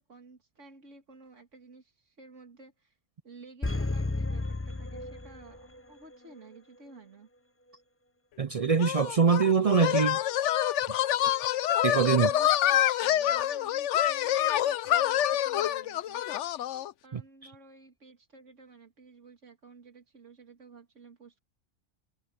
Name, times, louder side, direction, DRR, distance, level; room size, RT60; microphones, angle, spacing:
voice 1, 0.0-3.0 3.2-7.3 12.1-15.2 15.4-16.2 17.0-21.4, right 3 dB, 85° right, 2.7 m, -53 dB
sound 1, 3.6-5.8 6.1-6.2, left 2 dB, 15° left, 0.8 m, -32 dB
voice 2, 8.4-10.2 11.8-12.3 17.1-17.2, right 6 dB, 55° right, 0.4 m, -23 dB
sound 2, 8.8-16.9, left 12 dB, 75° left, 0.9 m, -27 dB
omnidirectional pair, 1.2 m